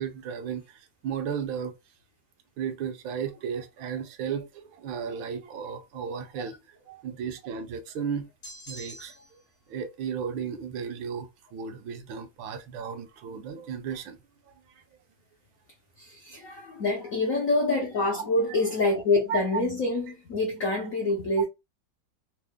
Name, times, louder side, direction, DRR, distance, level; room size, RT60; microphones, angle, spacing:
voice 1, 0.0-1.8 2.6-6.6 6.9-8.3 8.7-9.4 9.7-14.2 19.3-19.4, right 7 dB, 75° right, 1.4 m, -34 dB
sound 1, 8.4-9.4, equal, 40° left, 0.5 m, -44 dB
voice 2, 16.0-21.4, left 2 dB, 65° left, 0.8 m, -26 dB
3.7 x 2.1 x 3.4 m
omnidirectional pair, 2.3 m